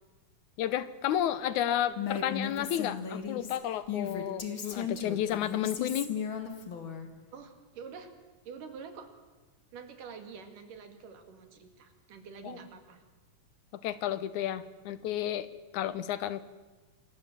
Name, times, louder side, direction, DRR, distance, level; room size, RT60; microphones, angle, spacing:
voice 1, 0.6-6.1 12.4-12.6 13.8-15.5 15.7-16.4, left 11 dB, 75° left, 14 dB, 2.3 m, -32 dB
Female speech woman speaking, 2.0-7.1, left 7 dB, 40° left, 2.6 m, -36 dB
voice 2, 7.3-8.1 8.5-9.1 9.7-13.0, right 6 dB, 90° right, 7 dB, 3.9 m, -47 dB
27.0 x 21.0 x 7.5 m, 1.3 s
omnidirectional pair, 3.6 m